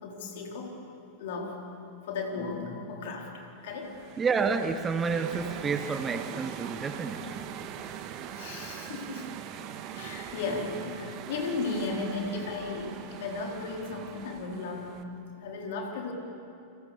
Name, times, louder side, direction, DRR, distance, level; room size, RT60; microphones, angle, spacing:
voice 1, 0.0-0.8 1.2-1.6 2.1-4.0 8.3-9.3 9.9-15.0 15.4-16.1, left 3 dB, 55° left, 1 dB, 4.6 m, -35 dB
sound 1, 3.7-15.0, right 9 dB, 40° right, 1.8 m, -42 dB
voice 2, 4.2-7.4, right 5 dB, 20° right, 9 dB, 1.4 m, -29 dB
29.5 x 27.0 x 7.1 m, 2.6 s
figure-of-eight pair, 90°, 0 cm